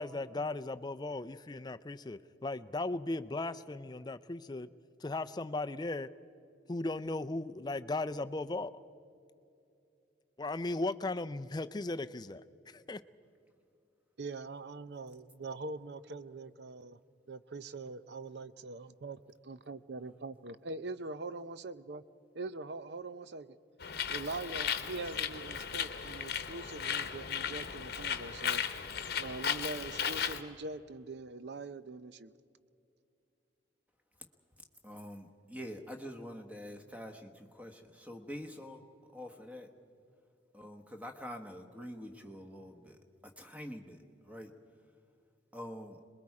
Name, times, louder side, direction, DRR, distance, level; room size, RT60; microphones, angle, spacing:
voice 1, 0.0-4.7 5.0-6.1 6.7-8.8 10.4-13.0, left 2 dB, 20° left, 12 dB, 0.4 m, -37 dB
voice 2, 14.2-17.0 17.3-19.2 19.5-22.0 22.3-23.6 24.1-28.6 29.2-32.3, right 3 dB, 60° right, 14 dB, 0.6 m, -43 dB
Bird, 23.8-30.4, left 8 dB, 55° left, 1.0 m, -36 dB
voice 3, 34.8-38.8 39.1-39.7 40.5-43.0 43.2-44.5 45.5-46.0, equal, 5° right, 5 dB, 1.2 m, -46 dB
27.0 x 21.5 x 4.8 m, 2.6 s
head